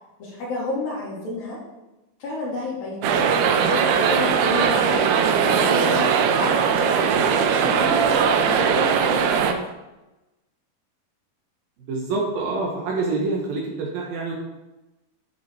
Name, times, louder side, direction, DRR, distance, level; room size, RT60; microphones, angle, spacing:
voice 1, 0.2-1.6 2.2-5.0 5.4-6.1 6.3-9.6, left 2 dB, 65° left, -4 dB, 4.7 m, -30 dB
sound 1, 3.0-9.5, right 7 dB, 85° right, 2.9 m, -20 dB
voice 2, 11.9-14.3, right 3 dB, 70° right, -2 dB, 3.2 m, -26 dB
13.0 x 7.7 x 4.8 m, 1.0 s
omnidirectional pair, 4.4 m